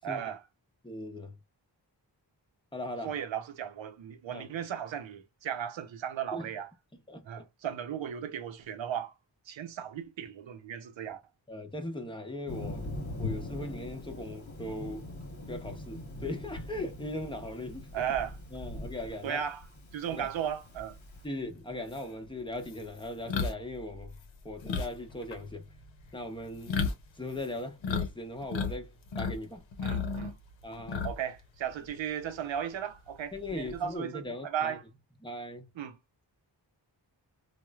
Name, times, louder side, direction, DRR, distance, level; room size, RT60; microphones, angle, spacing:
voice 1, 0.0-0.4 3.0-6.7 7.3-9.1 9.5-11.2 17.9-18.4 19.2-19.6 19.9-21.0 29.8-30.4 31.0-34.8 35.8-36.0, right 9 dB, 85° right, 0.6 m, -36 dB
voice 2, 0.8-1.3 2.7-3.1 4.3-4.5 6.3-6.5 7.1-7.5 11.5-12.9 13.2-15.1 15.5-18.0 18.5-19.4 20.1-20.3 21.2-24.1 24.4-25.7 26.1-26.8 27.2-29.6 30.6-31.1 33.3-34.8 35.2-35.7, left 1 dB, 10° left, 0.8 m, -39 dB
Thunder, 12.5-21.2, left 2 dB, 40° left, 1.1 m, -41 dB
sound 1, 21.4-21.5 21.9-28.1 28.4-29.4 29.7-31.4 31.7-31.9 33.3-33.9, left 5 dB, 90° left, 0.7 m, -34 dB
3.0 x 2.1 x 2.3 m
cardioid pair, 55°, 44 cm